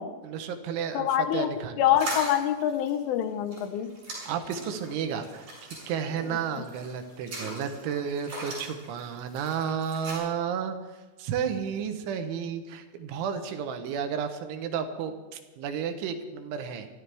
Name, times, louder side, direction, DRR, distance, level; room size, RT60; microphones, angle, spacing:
voice 1, 0.2-1.8 4.3-10.8 11.2-16.9, right 7 dB, 75° right, 7 dB, 3.2 m, -32 dB
voice 2, 0.9-1.5 1.8-3.9, left 10 dB, 80° left, 9 dB, 3.3 m, -25 dB
sound 1, 2.0-10.2, right 2 dB, 45° right, 8.8 m, -40 dB
25.0 x 14.0 x 3.4 m, 1.2 s
omnidirectional pair, 5.8 m